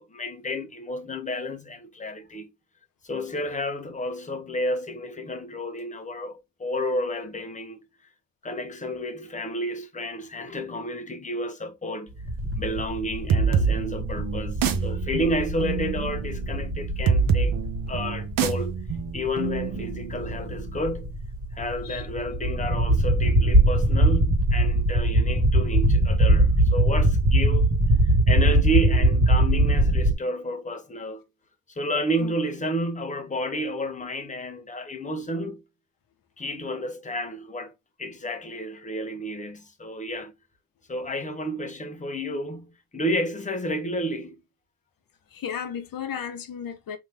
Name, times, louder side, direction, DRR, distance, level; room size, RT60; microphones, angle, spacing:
voice 1, 0.0-2.5 3.0-7.8 8.4-12.1 12.6-17.6 17.9-18.7 19.1-21.1 21.5-27.8 28.0-31.2 31.7-35.6 36.4-37.7 38.0-40.3 40.9-44.4, equal, 15° left, 0.9 m, -31 dB
sound 1, 12.2-30.1, right 1 dB, 30° right, 1.5 m, -22 dB
sound 2, 13.3-20.7, right 6 dB, 50° right, 0.7 m, -26 dB
voice 2, 45.3-47.0, left 8 dB, 50° left, 1.0 m, -34 dB
3.5 x 2.8 x 3.3 m
cardioid pair, 105°, 45 cm